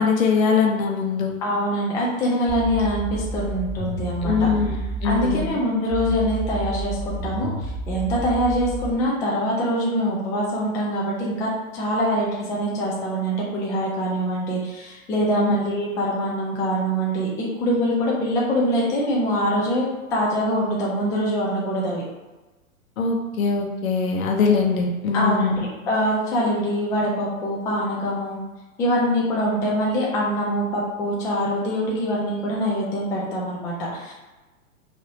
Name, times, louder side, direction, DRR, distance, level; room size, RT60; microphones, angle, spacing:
voice 1, 0.0-1.4 4.2-5.6 15.3-15.6 23.0-25.6, left 5 dB, 75° left, 1 dB, 0.9 m, -22 dB
voice 2, 1.4-4.7 5.0-22.0 25.1-28.4 28.8-34.1, equal, 10° left, -4 dB, 0.3 m, -24 dB
sound 1, 2.5-5.5 5.9-8.9, right 2 dB, 10° right, 1.1 m, -31 dB
5.1 x 2.8 x 2.8 m, 1.2 s
hypercardioid pair, 115°, 42 cm